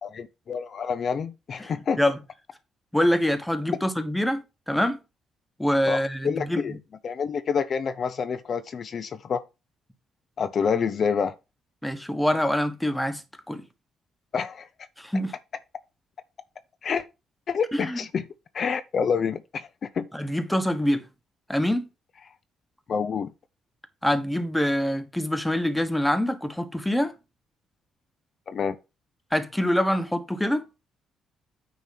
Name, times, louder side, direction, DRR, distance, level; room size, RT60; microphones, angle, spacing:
voice 1, 0.0-2.0 5.9-6.8 7.0-9.4 10.4-11.3 14.3-14.7 16.8-17.0 17.5-18.2 18.5-19.7 19.9-20.1 22.9-23.3 28.5-28.8, left 6 dB, 50° left, 0.6 m, -27 dB
voice 2, 2.9-5.0 5.6-6.8 11.8-13.2 13.5-13.6 15.0-15.3 17.7-18.0 20.1-21.0 21.5-21.8 24.0-27.1 29.3-30.6, left 1 dB, 5° left, 1.2 m, -25 dB
9.2 x 3.1 x 5.8 m
cardioid pair, 90°, 0 cm